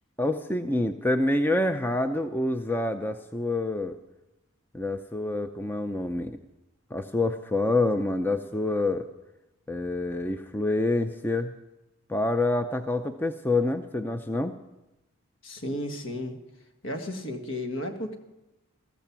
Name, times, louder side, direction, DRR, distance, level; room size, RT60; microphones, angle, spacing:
voice 1, 0.2-3.9 4.7-6.4 6.9-9.0 9.7-11.5 12.1-14.5, left 2 dB, 10° left, 8 dB, 0.5 m, -27 dB
voice 2, 15.4-16.4 16.8-18.2, left 1 dB, 65° left, 5 dB, 1.7 m, -33 dB
14.5 x 14.5 x 6.0 m, 0.95 s
head